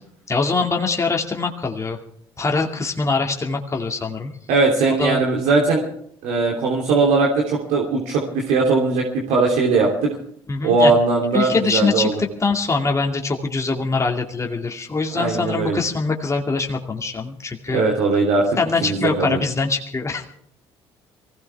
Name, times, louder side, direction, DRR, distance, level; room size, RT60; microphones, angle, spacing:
voice 1, 0.3-2.0 2.4-4.3 5.0-5.2 10.5-10.9 11.3-17.8 18.6-20.2, left 4 dB, 25° left, 1 dB, 2.3 m, -23 dB
voice 2, 4.5-5.9 6.2-10.1 10.6-12.1 15.1-15.8 17.7-19.4, right 3 dB, 70° right, -1 dB, 3.1 m, -19 dB
23.5 x 16.5 x 3.5 m, 0.66 s
hypercardioid pair, 55°, 13 cm